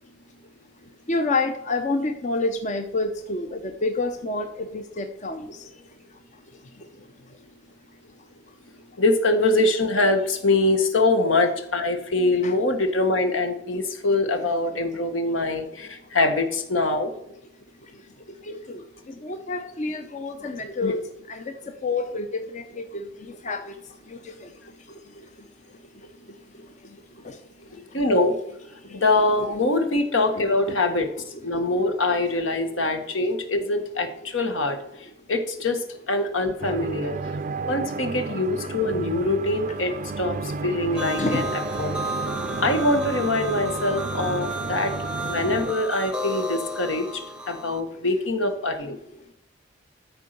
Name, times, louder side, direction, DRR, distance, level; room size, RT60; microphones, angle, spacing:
voice 1, 1.1-5.7 6.7-7.1 12.4-12.5 13.7-13.8 14.9-15.0 15.5-15.6 17.8-24.6 24.9-28.0 28.8-29.0 30.3-30.8 31.2-31.3 31.5-31.8 38.6-38.7 40.3-40.4 41.2-41.5 42.4-42.5 44.9-45.0, left 3 dB, 35° left, 6 dB, 0.7 m, -30 dB
voice 2, 9.0-17.1 20.8-20.9 27.9-28.4 28.9-31.1 31.4-34.8 35.3-35.8 36.1-37.2 37.7-41.5 41.8-41.9 42.6-44.9 45.3-49.0, left 2 dB, 75° left, 7 dB, 1.6 m, -23 dB
sound 1, 36.6-45.7, right 4 dB, 40° right, 0.5 m, -32 dB
sound 2, 40.9-47.8, equal, 5° right, 0.8 m, -33 dB
13.5 x 4.7 x 6.8 m, 0.79 s
head